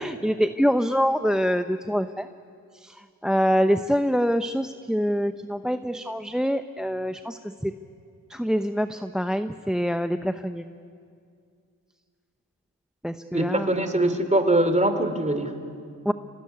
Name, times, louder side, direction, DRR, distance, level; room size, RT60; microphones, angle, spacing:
voice 1, 0.0-2.3 2.8-7.7 8.3-10.7 13.0-14.2 16.0-16.1, equal, ahead, 10 dB, 0.9 m, -25 dB
voice 2, 13.3-15.5, right 1 dB, 15° right, 9 dB, 3.5 m, -22 dB
26.0 x 18.5 x 9.6 m, 2.3 s
supercardioid pair, 45°, 41 cm